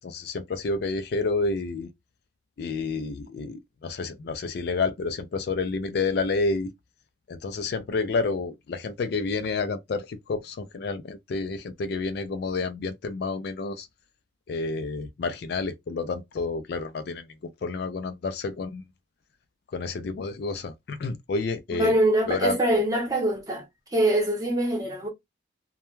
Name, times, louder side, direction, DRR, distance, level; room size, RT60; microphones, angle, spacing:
voice 1, 0.0-1.9 2.6-6.7 7.3-13.9 14.5-17.3 17.6-18.8 19.7-21.9 22.3-22.6, left 3 dB, 55° left, 0.3 m, -29 dB
voice 2, 21.7-23.6 23.9-25.1, right 1 dB, 20° right, 0.7 m, -24 dB
2.2 x 2.1 x 3.0 m
head